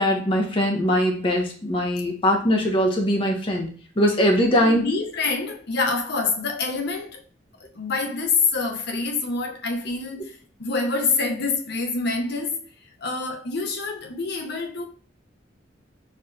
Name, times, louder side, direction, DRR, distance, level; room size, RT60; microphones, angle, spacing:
voice 1, 0.0-3.7 4.0-4.8, equal, 25° left, 0.8 m, -21 dB
voice 2, 4.6-7.2 7.7-12.6 13.0-14.9, left 4 dB, 55° left, 0.7 m, -26 dB
4.3 x 3.1 x 2.6 m
head